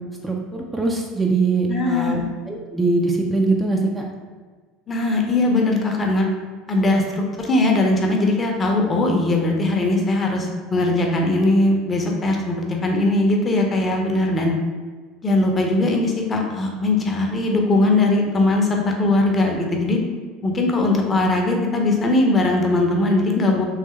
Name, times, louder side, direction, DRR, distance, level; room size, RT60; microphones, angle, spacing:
voice 1, 0.2-2.2 2.5-4.0, right 3 dB, 15° right, 0 dB, 0.4 m, -22 dB
voice 2, 1.7-2.3 4.9-6.3 6.7-14.5 15.2-20.0 20.4-23.6, left 2 dB, 25° left, 1 dB, 0.6 m, -20 dB
3.3 x 3.2 x 3.1 m, 1.5 s
figure-of-eight pair, 70°, 0 cm